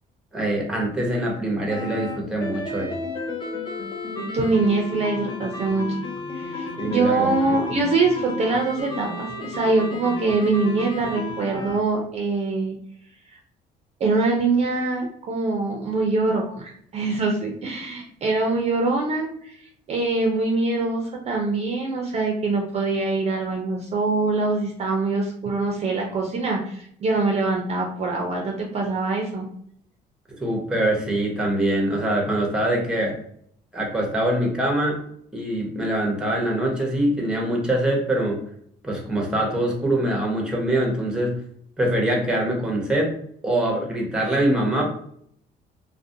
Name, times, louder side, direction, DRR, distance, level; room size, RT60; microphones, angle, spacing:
voice 1, 0.3-3.0 6.8-7.6 30.4-33.2 33.7-35.0 35.3-38.4 38.8-41.4 41.8-43.1 43.4-44.8, right 1 dB, 5° right, 0 dB, 0.7 m, -23 dB
sound 1, 1.7-11.8, left 2 dB, 25° left, 0.5 m, -32 dB
voice 2, 4.2-6.0 6.3-12.7 14.0-19.6 19.9-29.5, right 3 dB, 40° right, 0 dB, 0.4 m, -24 dB
2.4 x 2.1 x 2.6 m, 0.65 s
cardioid pair, 110°, 17 cm